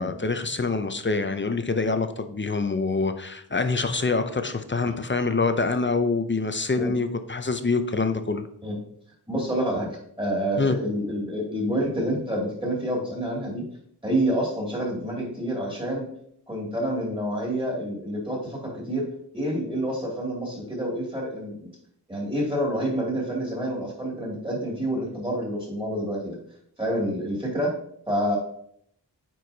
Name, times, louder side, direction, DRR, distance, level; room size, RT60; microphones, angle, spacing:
voice 1, 0.0-8.4 10.6-10.8, left 3 dB, 25° left, 8 dB, 0.6 m, -25 dB
voice 2, 9.3-9.9 10.2-13.6 14.0-16.1 16.5-19.1 19.3-21.7 22.1-26.4 26.8-27.7 28.1-28.4, right 1 dB, 10° right, -3 dB, 2.5 m, -28 dB
9.0 x 4.6 x 2.8 m, 0.68 s
wide cardioid pair, 60°, 43 cm